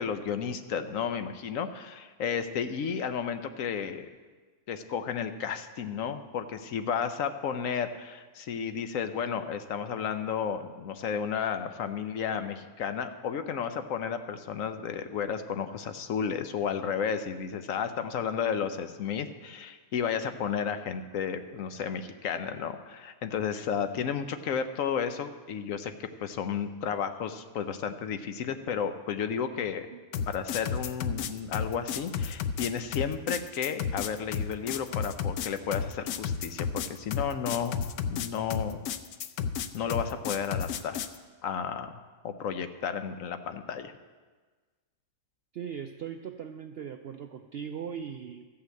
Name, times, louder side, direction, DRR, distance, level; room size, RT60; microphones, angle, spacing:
voice 1, 0.0-4.1 4.7-29.9 30.3-37.8 38.1-38.8 39.7-41.0 41.4-41.9 42.2-43.9, left 7 dB, 70° left, 9 dB, 1.0 m, -32 dB
sound 1, 30.1-41.2, left 7 dB, 90° left, 1.1 m, -32 dB
voice 2, 45.5-48.5, right 8 dB, 70° right, 6 dB, 0.6 m, -39 dB
13.5 x 5.7 x 7.7 m, 1.4 s
omnidirectional pair, 1.5 m